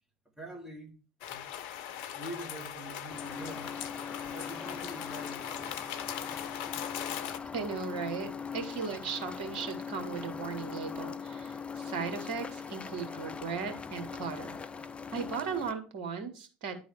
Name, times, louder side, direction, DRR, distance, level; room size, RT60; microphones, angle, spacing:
voice 1, 0.4-0.9 1.3-1.5 1.9-3.8 4.0-5.8, right 1 dB, 10° right, 2.4 m, -45 dB
sound 1, 1.2-7.4, left 10 dB, 65° left, 0.7 m, -40 dB
sound 2, 3.1-15.7, left 6 dB, 25° left, 0.7 m, -41 dB
voice 2, 7.5-14.6 15.1-16.8, right 5 dB, 70° right, 1.6 m, -37 dB
10.5 x 4.0 x 4.8 m
hypercardioid pair, 65°, 5 cm